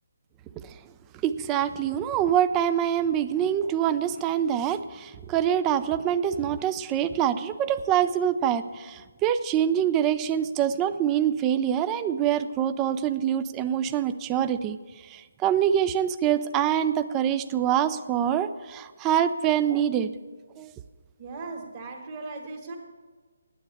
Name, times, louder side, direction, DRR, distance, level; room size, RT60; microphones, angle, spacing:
voice 1, 1.2-14.8 15.1-20.1 20.6-20.7, right 9 dB, 15° right, 11 dB, 0.4 m, -25 dB
voice 2, 21.2-22.8, right 3 dB, 35° right, -2 dB, 1.6 m, -38 dB
9.9 x 8.7 x 8.2 m, 1.4 s
figure-of-eight pair, 160°, 0 cm